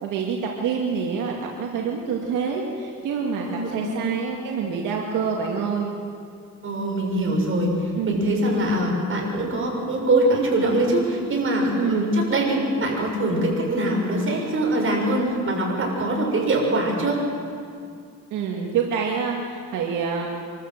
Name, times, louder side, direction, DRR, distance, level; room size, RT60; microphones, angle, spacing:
voice 1, 0.0-5.9 8.0-8.3 11.7-12.1 18.3-20.3, right 6 dB, 90° right, -1 dB, 2.2 m, -26 dB
voice 2, 3.4-4.1 6.6-17.2, right 1 dB, 45° right, -1 dB, 6.8 m, -23 dB
26.0 x 13.5 x 8.0 m, 2.3 s
cardioid pair, 90°, 30 cm